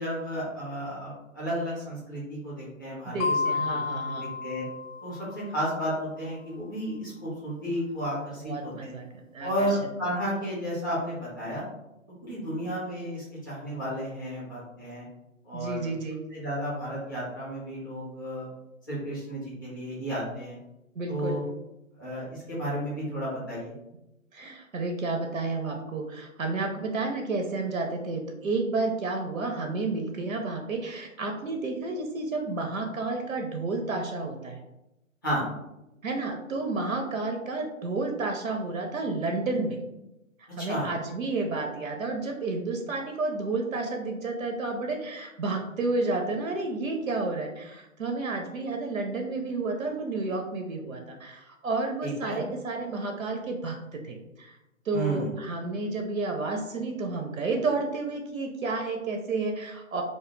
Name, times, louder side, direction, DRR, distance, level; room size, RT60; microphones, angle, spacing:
voice 1, 0.0-3.8 4.2-4.7 5.0-9.0 9.4-11.6 12.2-15.1 15.4-15.9 16.3-18.5 18.9-20.6 21.1-21.4 22.0-23.7 35.2-35.4 40.6-40.9 52.0-52.5 54.9-55.3, equal, 15° left, -8 dB, 0.5 m, -32 dB
voice 2, 3.1-4.3 8.4-9.1 9.3-9.8 15.5-16.2 21.0-21.5 24.3-34.6 36.0-39.8 40.4-54.6 54.9-60.0, right 3 dB, 75° right, 3 dB, 0.6 m, -31 dB
sound 1, 3.2-5.7, left 4 dB, 70° left, 0.5 m, -31 dB
2.1 x 2.1 x 3.1 m, 0.92 s
figure-of-eight pair, 140°, 41 cm